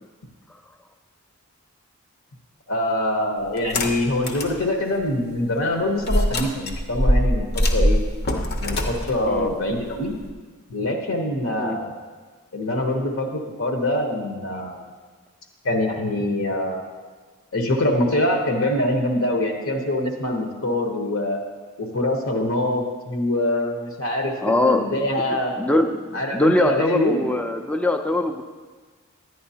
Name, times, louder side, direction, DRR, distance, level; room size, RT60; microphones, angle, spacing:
voice 1, 2.7-8.0 8.6-10.1 10.7-11.9 12.5-14.8 15.6-16.8 17.5-21.4 21.8-25.5 26.1-27.3, left 1 dB, 70° left, 2 dB, 1.0 m, -24 dB
sound 1, 3.6-4.6 5.0-5.1 6.0-10.3, equal, 45° left, 0.7 m, -22 dB
voice 2, 24.4-24.8 25.6-28.4, left 2 dB, 5° left, 5 dB, 0.4 m, -22 dB
11.0 x 9.4 x 2.8 m, 1.4 s
head